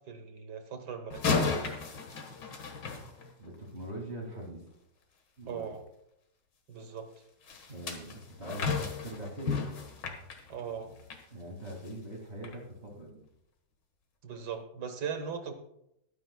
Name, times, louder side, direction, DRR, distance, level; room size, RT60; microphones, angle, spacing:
voice 1, 0.1-1.7 5.5-5.8 6.7-7.1 10.5-10.9 14.2-15.5, right 7 dB, 65° right, 7 dB, 1.8 m, -39 dB
sound 1, 1.1-3.7 7.5-11.3 11.7-11.9 12.4-12.6, left 4 dB, 70° left, 2.1 m, -34 dB
voice 2, 3.4-4.7 5.4-5.7 7.7-9.6 11.3-13.2, right 1 dB, 35° right, 0 dB, 2.4 m, -42 dB
21.5 x 9.4 x 2.2 m, 0.80 s
omnidirectional pair, 2.0 m